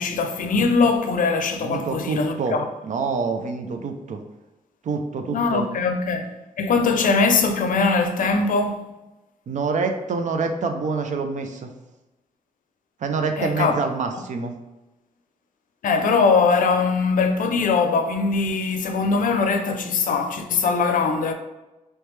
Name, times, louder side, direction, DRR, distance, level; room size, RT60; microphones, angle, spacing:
voice 1, 0.0-2.7 5.3-6.3 6.6-8.9 13.4-13.8 15.8-21.3, left 4 dB, 75° left, 0.5 m, -21 dB
voice 2, 1.6-2.6 2.8-4.2 4.8-5.6 9.5-11.7 13.0-14.5, right 4 dB, 60° right, 0.5 m, -26 dB
3.2 x 3.1 x 3.1 m
cardioid pair, 90°, 14 cm